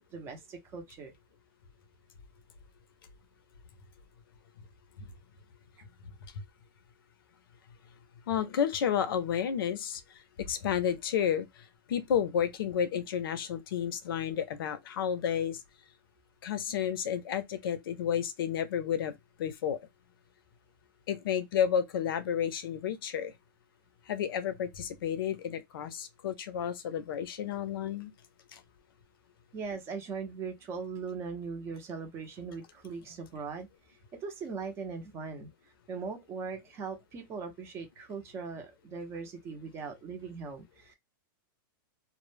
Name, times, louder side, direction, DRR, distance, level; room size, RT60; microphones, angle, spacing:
voice 1, 0.1-1.1 29.5-33.7 34.2-35.5 35.9-40.9, right 5 dB, 20° right, 0.5 m, -40 dB
voice 2, 8.3-10.0 10.4-11.5 11.9-15.6 16.4-19.8 21.1-23.3 24.1-28.1 28.5-28.6, left 8 dB, 75° left, 0.5 m, -31 dB
2.1 x 2.0 x 3.1 m
supercardioid pair, 155°, 12 cm